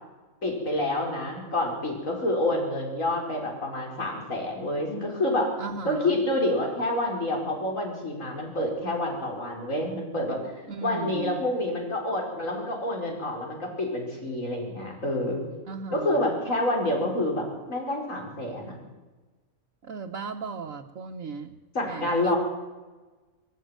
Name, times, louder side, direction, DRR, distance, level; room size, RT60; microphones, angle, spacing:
voice 1, 0.4-5.5 5.8-10.5 10.8-15.4 15.9-18.8 21.7-22.4, left 1 dB, 70° left, 0 dB, 5.5 m, -28 dB
voice 2, 5.6-6.2 10.7-11.4 15.7-16.4 19.8-21.6 21.9-22.3, right 5 dB, 70° right, 0 dB, 1.5 m, -36 dB
22.5 x 14.5 x 9.0 m, 1.2 s
omnidirectional pair, 1.4 m